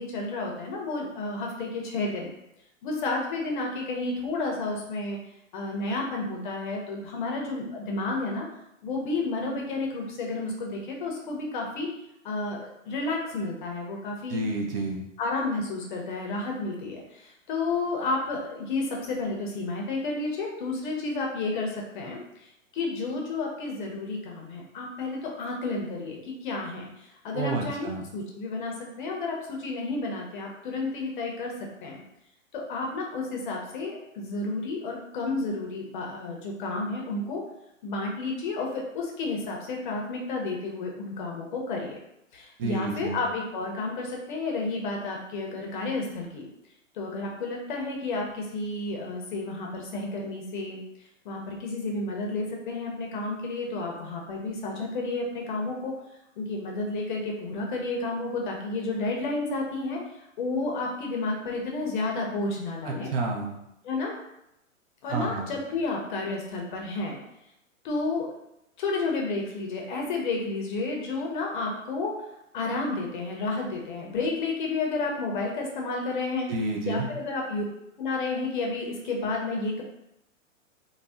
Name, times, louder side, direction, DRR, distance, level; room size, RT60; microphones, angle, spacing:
voice 1, 0.0-2.3 2.8-5.2 5.5-8.5 8.8-11.9 12.2-14.4 15.2-22.5 22.7-31.5 31.8-32.0 32.5-37.4 37.8-42.0 42.3-46.5 46.9-50.8 51.2-55.9 56.4-60.0 60.4-63.1 63.8-64.2 65.0-67.2 67.8-68.3 68.8-72.1 72.5-76.5 76.9-77.6 78.0-79.8, left 3 dB, 40° left, 0 dB, 0.6 m, -31 dB
voice 2, 14.3-15.0 27.3-28.1 42.6-43.2 62.9-63.5 65.1-65.5 76.5-77.1, right 2 dB, 45° right, 0 dB, 0.6 m, -30 dB
2.6 x 2.1 x 3.4 m, 0.82 s
hypercardioid pair, 145°, 39 cm